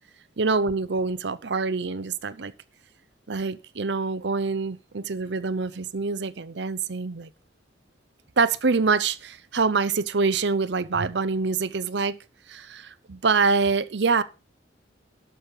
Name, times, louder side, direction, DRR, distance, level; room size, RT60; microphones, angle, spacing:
voice 1, 0.4-2.5 3.3-7.3 8.4-12.2 12.5-14.2, right 4 dB, 65° right, 0.7 m, -25 dB
12.5 x 6.4 x 5.4 m
head